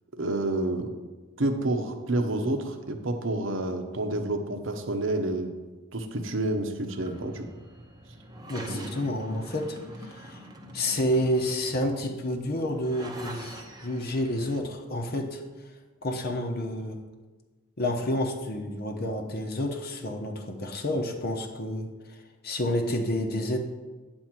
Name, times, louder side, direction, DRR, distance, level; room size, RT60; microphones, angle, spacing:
voice 1, 0.2-0.9 1.4-5.5 5.9-7.4, right 2 dB, 60° right, 5 dB, 1.0 m, -29 dB
sound 1, 6.8-14.6, right 1 dB, 20° right, 0.8 m, -44 dB
voice 2, 8.5-10.4 10.7-15.4 16.0-17.0 17.8-22.2 22.4-23.6, left 1 dB, 45° left, 2 dB, 0.9 m, -29 dB
9.4 x 4.5 x 7.5 m, 1.3 s
head